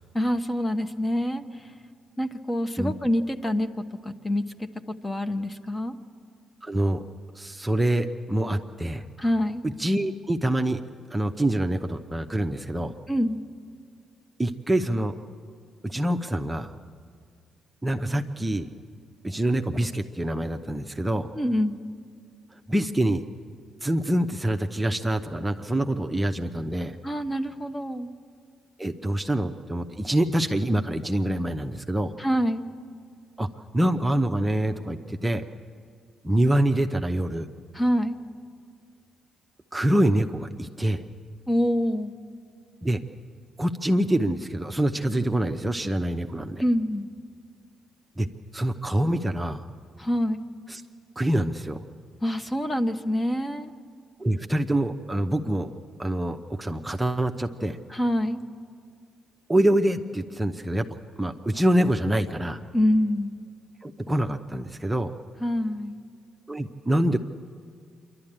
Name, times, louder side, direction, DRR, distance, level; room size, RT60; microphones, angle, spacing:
voice 1, 0.1-1.7 2.2-5.9 9.2-9.6 13.1-13.4 21.3-21.8 27.0-28.1 32.2-32.6 37.7-38.2 41.5-42.1 46.6-47.1 50.0-50.4 52.2-53.7 57.9-58.4 62.7-63.4 65.4-66.0, equal, 20° left, 8 dB, 1.1 m, -26 dB
voice 2, 6.6-7.0 7.3-9.0 9.8-12.9 14.4-15.1 15.8-16.7 17.8-18.7 19.2-21.3 22.5-23.2 23.8-27.0 28.8-32.1 33.4-33.5 33.7-35.4 36.2-37.5 39.7-41.0 42.8-43.0 43.6-46.6 48.2-48.3 48.5-49.6 50.7-50.8 51.2-51.8 54.2-55.7 56.0-57.8 59.5-60.9 61.2-62.6 63.8-65.1 66.5-67.2, right 1 dB, 15° right, 5 dB, 0.8 m, -25 dB
26.0 x 12.0 x 8.8 m, 2.1 s
supercardioid pair, 65°, 0 cm